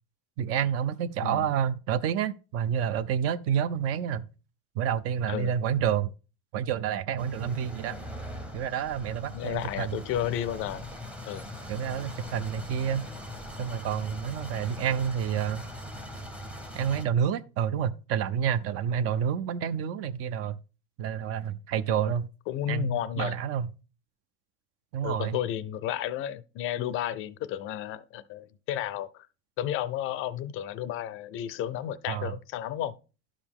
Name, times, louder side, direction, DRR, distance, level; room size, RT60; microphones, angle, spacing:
voice 1, 0.4-4.3 4.8-6.1 6.5-8.0 8.5-10.0 11.7-13.1 13.6-15.6 16.7-20.6 21.0-22.3 22.7-23.7 24.9-25.4 32.1-32.3, right 8 dB, 45° right, 0.5 m, -29 dB
sound 1, 7.2-17.1, equal, 5° right, 0.7 m, -41 dB
voice 2, 9.3-10.9 11.3-11.4 21.9-22.1 22.5-23.3 25.0-29.3 29.6-32.9, left 11 dB, 40° left, 0.5 m, -32 dB
11.5 x 5.0 x 3.6 m
cardioid pair, 150°, 32 cm